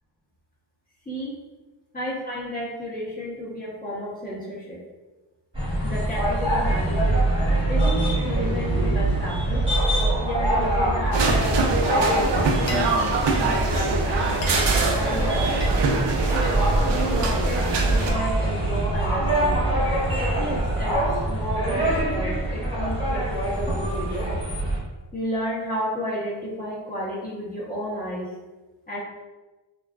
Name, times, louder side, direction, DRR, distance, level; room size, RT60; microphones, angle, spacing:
voice 1, 1.1-1.4 1.9-4.8 5.8-7.2 7.7-9.6 10.2-12.3 12.6-16.2 16.9-19.8 20.4-24.4 25.1-28.3 28.9-29.0, equal, 20° left, -7 dB, 0.7 m, -32 dB
sound 1, 5.5-24.8, right 1 dB, 10° right, 0.9 m, -24 dB
sound 2, 11.1-18.1, right 3 dB, 75° right, 0.6 m, -24 dB
Glass, 12.1-13.0 13.2-13.6 14.0-14.1 14.3-16.6 17.0-17.7, left 2 dB, 85° left, 0.6 m, -37 dB
3.3 x 2.3 x 2.3 m, 1.2 s
wide cardioid pair, 105°, 43 cm